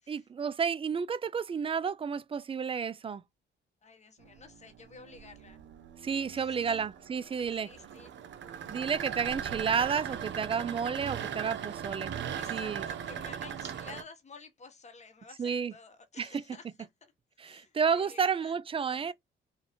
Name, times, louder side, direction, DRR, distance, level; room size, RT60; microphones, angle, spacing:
voice 1, 0.1-3.2 6.0-7.7 8.7-12.1 12.5-12.8 15.4-15.7 16.2-16.4 17.4-19.1, right 6 dB, 30° right, 0.4 m, -31 dB
voice 2, 3.8-5.6 6.3-6.8 7.6-8.1 12.3-17.1 17.4-18.6 18.9-19.1, left 4 dB, 35° left, 1.1 m, -52 dB
sound 1, 4.2-14.0, right 9 dB, 65° right, 0.8 m, -39 dB
3.8 x 2.6 x 3.4 m
cardioid pair, 90°, 20 cm